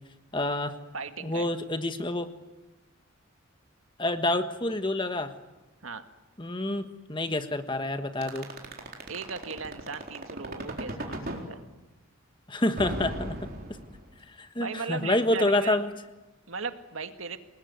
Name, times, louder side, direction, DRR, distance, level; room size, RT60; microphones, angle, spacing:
voice 1, 0.3-0.7 1.2-2.3 4.0-5.3 6.4-8.5 12.5-13.4 14.4-15.9, left 1 dB, 20° left, 8 dB, 1.4 m, -28 dB
voice 2, 0.9-1.5 5.8-6.1 9.1-11.2 11.5-11.7 14.6-15.8 16.5-17.4, right 4 dB, 75° right, 8 dB, 1.8 m, -37 dB
sound 1, 8.2-11.4 12.8-14.2, right 1 dB, 45° right, 4.1 m, -35 dB
27.5 x 20.0 x 9.5 m, 1.1 s
head